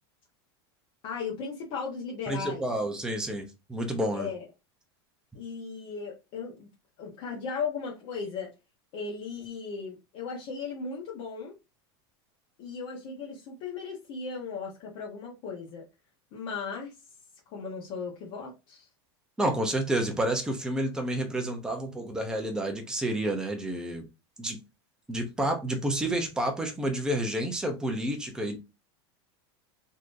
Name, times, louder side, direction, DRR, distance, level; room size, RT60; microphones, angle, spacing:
voice 1, 1.0-2.6 4.1-4.4 5.3-6.7 7.0-8.5 8.9-11.5 12.6-15.8 16.3-17.0 17.5-18.8, left 5 dB, 45° left, 1.1 m, -36 dB
voice 2, 2.3-4.3 19.4-24.0 24.4-24.6 25.1-28.6, right 1 dB, 5° right, 0.7 m, -29 dB
3.7 x 3.0 x 2.6 m
supercardioid pair, 160°, 14 cm